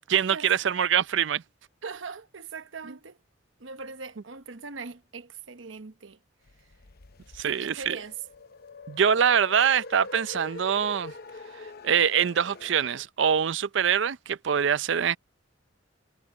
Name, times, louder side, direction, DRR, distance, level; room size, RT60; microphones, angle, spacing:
voice 1, 0.1-1.4 7.4-8.0 8.9-11.1 11.8-15.2, right 8 dB, 70° right, 0.5 m, -24 dB
voice 2, 1.8-3.2 3.6-6.2 7.4-8.2, right 4 dB, 90° right, 1.1 m, -40 dB
sound 1, 6.5-13.0, left 3 dB, 55° left, 0.8 m, -44 dB
head